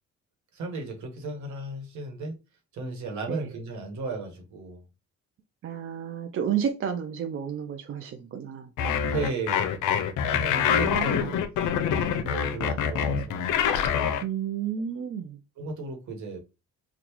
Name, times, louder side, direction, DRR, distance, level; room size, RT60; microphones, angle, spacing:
voice 1, 0.5-2.4 2.7-4.8 9.1-9.8 10.2-11.4 11.9-13.6 15.6-16.4, right 2 dB, 70° right, 1.3 m, -35 dB
voice 2, 5.6-8.7 10.6-11.4 14.2-15.4, right 8 dB, 45° right, 0.5 m, -31 dB
sound 1, 8.8-14.2, left 8 dB, 80° left, 0.5 m, -25 dB
3.8 x 2.3 x 2.9 m
cardioid pair, 90°, 30 cm